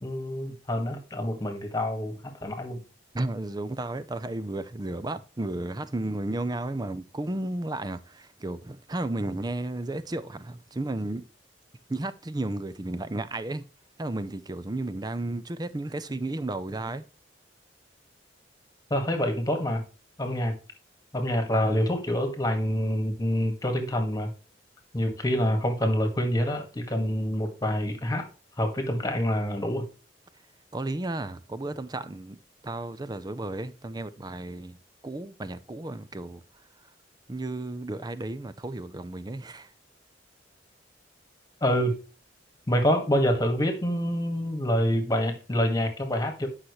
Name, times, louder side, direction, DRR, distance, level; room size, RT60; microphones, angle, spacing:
voice 1, 0.0-2.8 18.9-19.8 20.2-20.6 21.1-24.3 24.9-28.3 28.6-29.9 41.6-41.9 42.7-46.5, equal, 20° left, 1.8 m, -26 dB
voice 2, 3.1-11.3 11.9-13.6 14.0-17.0 30.7-32.4 32.6-34.8 35.0-36.4 37.3-39.7, right 2 dB, 20° right, 0.6 m, -33 dB
10.5 x 5.7 x 3.2 m
head